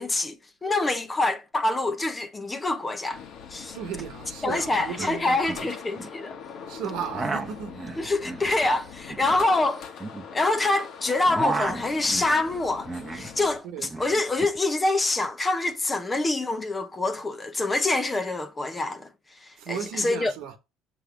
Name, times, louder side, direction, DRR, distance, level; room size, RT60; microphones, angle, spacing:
voice 1, 0.0-3.2 3.5-3.8 4.4-6.3 8.0-9.9 10.3-19.1 19.4-20.3, left 2 dB, 15° left, 0.8 m, -26 dB
sound 1, 3.1-13.6, left 6 dB, 55° left, 1.4 m, -42 dB
voice 2, 3.7-5.8 6.7-7.9 13.6-13.9 19.6-20.6, right 8 dB, 70° right, 1.4 m, -35 dB
sound 2, 3.9-4.0 4.3-4.7 4.9-6.2 6.8-10.8 11.1-13.3 13.6-14.6, right 3 dB, 15° right, 1.0 m, -34 dB
6.6 x 3.2 x 5.8 m
cardioid pair, 115°, 0 cm